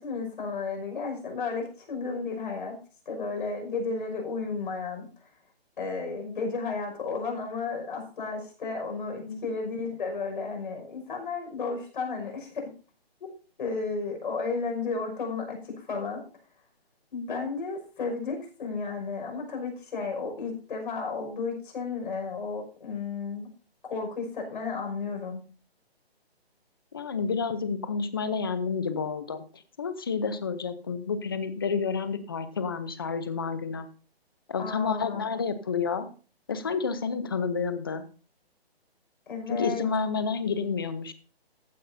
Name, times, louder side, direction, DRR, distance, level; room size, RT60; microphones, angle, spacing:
voice 1, 0.0-2.8 3.1-5.1 5.8-12.7 13.6-16.3 17.1-23.5 23.8-25.4 34.6-35.2 39.3-39.9, left 4 dB, 50° left, 2 dB, 5.7 m, -33 dB
voice 2, 26.9-33.9 34.5-36.1 36.5-38.0 39.5-41.1, left 5 dB, 20° left, 12 dB, 0.7 m, -30 dB
15.0 x 9.9 x 2.7 m, 0.37 s
hypercardioid pair, 170°, 32 cm